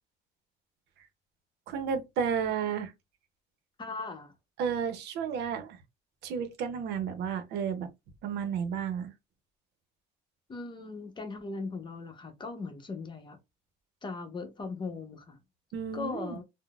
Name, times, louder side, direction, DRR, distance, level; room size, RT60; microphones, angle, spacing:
voice 1, 1.7-2.9 4.6-5.8 6.2-7.9 8.2-9.1 15.7-16.4, right 7 dB, 80° right, 0.6 m, -32 dB
voice 2, 3.8-4.3 10.5-13.4 14.0-15.4 15.9-16.4, left 4 dB, 30° left, 0.7 m, -39 dB
3.7 x 2.0 x 2.3 m
cardioid pair, 110°, 17 cm